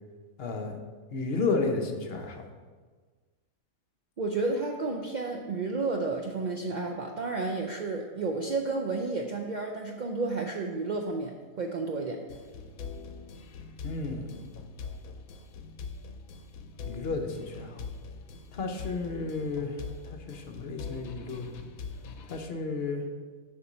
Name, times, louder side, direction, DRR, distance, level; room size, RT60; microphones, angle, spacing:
voice 1, 0.4-0.8 1.1-2.4 13.8-14.3 16.9-17.9 18.5-19.7 20.3-21.6 22.3-23.0, left 3 dB, 50° left, 4 dB, 0.9 m, -32 dB
voice 2, 4.2-12.2, right 3 dB, 70° right, 2 dB, 0.4 m, -31 dB
sound 1, 12.3-22.4, left 4 dB, 80° left, 1.1 m, -43 dB
6.9 x 4.6 x 6.2 m, 1.5 s
omnidirectional pair, 1.5 m